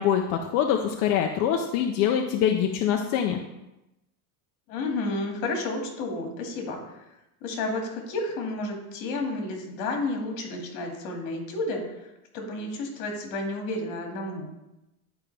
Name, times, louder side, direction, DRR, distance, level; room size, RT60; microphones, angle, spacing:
voice 1, 0.0-3.4, left 9 dB, 40° left, 3 dB, 0.5 m, -24 dB
voice 2, 4.7-7.0 7.4-11.8 12.3-14.5, left 2 dB, 55° left, 1 dB, 2.1 m, -31 dB
10.5 x 5.0 x 3.3 m, 0.93 s
cardioid pair, 165°, 42 cm